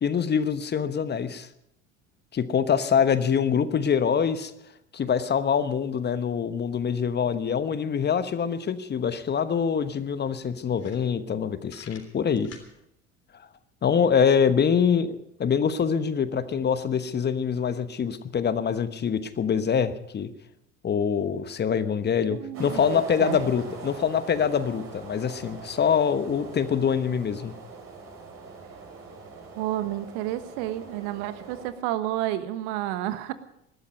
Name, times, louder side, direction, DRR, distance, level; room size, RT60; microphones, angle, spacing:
voice 1, 0.0-1.5 2.3-4.5 4.9-12.5 13.8-20.3 20.8-27.5, left 7 dB, 30° left, 12 dB, 1.1 m, -25 dB
sound 1, 10.7-11.4 11.7-12.7, left 7 dB, 45° left, 3.4 m, -48 dB
voice 2, 22.2-23.4 29.6-33.3, right 13 dB, 60° right, 12 dB, 1.3 m, -31 dB
sound 2, 22.5-31.7, right 4 dB, 40° right, 5.3 m, -42 dB
20.0 x 12.5 x 5.3 m, 0.78 s
hypercardioid pair, 65°, 35 cm